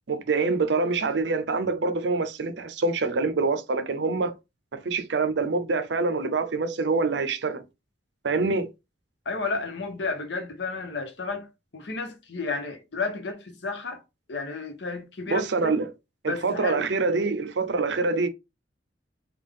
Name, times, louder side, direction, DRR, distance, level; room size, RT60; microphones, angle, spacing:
voice 1, 0.1-4.3 4.7-7.6 8.2-8.7 15.3-15.9 16.2-18.3, right 3 dB, 70° right, 0.6 m, -25 dB
voice 2, 9.3-11.5 11.7-14.0 14.3-15.8 16.3-16.8, left 3 dB, 70° left, 0.9 m, -32 dB
3.5 x 2.3 x 3.6 m
head